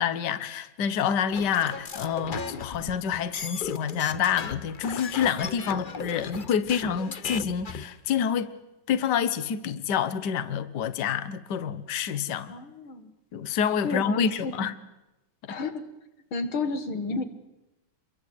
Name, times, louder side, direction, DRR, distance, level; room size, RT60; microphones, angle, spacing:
voice 1, 0.0-8.5 8.9-12.5 13.3-14.7 15.5-15.6, left 8 dB, 60° left, 1.7 m, -27 dB
sound 1, 1.3-7.9, left 5 dB, 40° left, 0.7 m, -37 dB
voice 2, 12.5-13.1 13.8-14.7 15.5-15.8 16.3-17.2, left 3 dB, 90° left, 2.7 m, -31 dB
28.0 x 22.5 x 8.2 m
omnidirectional pair, 2.2 m